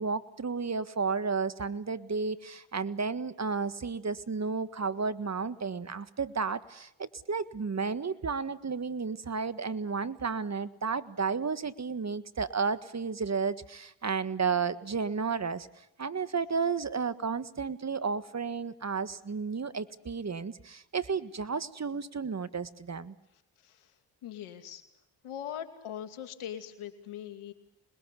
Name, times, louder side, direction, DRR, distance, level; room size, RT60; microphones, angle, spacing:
voice 1, 0.0-23.1, right 5 dB, 30° right, 14 dB, 1.7 m, -32 dB
voice 2, 23.6-23.9 24.2-24.8 25.2-27.5, left 10 dB, 80° left, 8 dB, 2.8 m, -41 dB
27.0 x 21.0 x 8.4 m, 0.82 s
supercardioid pair, 55°, 49 cm